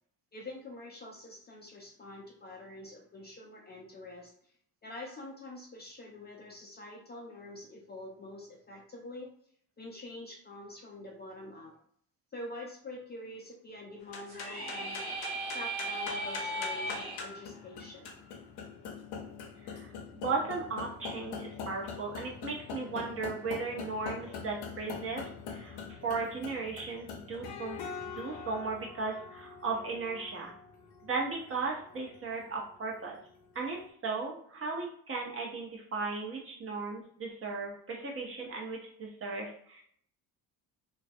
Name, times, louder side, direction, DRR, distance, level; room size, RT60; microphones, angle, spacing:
voice 1, 0.3-4.3 4.8-9.3 9.8-11.8 12.3-18.1, left 2 dB, 25° left, 0 dB, 0.4 m, -46 dB
sound 1, 14.0-33.6, left 5 dB, 85° left, 0.5 m, -44 dB
sound 2, 14.3-17.2, right 1 dB, 80° right, 1.0 m, -36 dB
voice 2, 19.6-27.8 28.1-30.5 31.0-33.2 33.5-39.8, right 4 dB, 35° right, -1 dB, 0.7 m, -36 dB
2.3 x 2.1 x 2.6 m, 0.63 s
cardioid pair, 95°, 39 cm